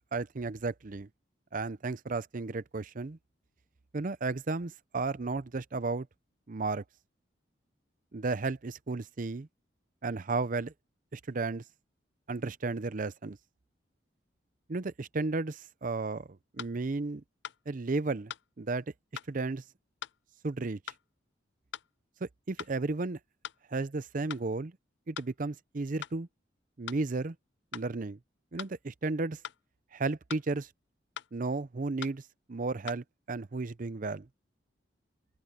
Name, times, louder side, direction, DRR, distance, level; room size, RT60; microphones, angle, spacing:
voice 1, 0.1-1.1 1.5-3.2 3.9-6.1 6.5-6.8 8.1-9.5 10.0-10.7 11.1-11.6 12.3-13.4 14.7-17.2 17.7-18.8 19.3-19.6 20.4-20.8 22.2-23.2 23.7-24.7 25.1-26.3 26.8-27.4 27.7-28.2 28.5-29.4 29.9-30.7 31.3-32.2 32.5-34.3, right 3 dB, 45° right, 0.6 m, -33 dB
sound 1, 16.6-16.7 17.4-17.6 18.3-18.5 19.2-19.3 20.0-20.2 20.9-21.0 21.7-21.9 22.6-22.7 23.4-23.6 24.3-24.5 25.1-25.3 26.0-26.2 26.9-27.0 27.7-27.9 28.6-28.8 29.4-29.6 30.3-30.5 31.2-31.3 32.0-32.2 32.9-33.0, left 9 dB, 65° left, 0.4 m, -41 dB
open air
head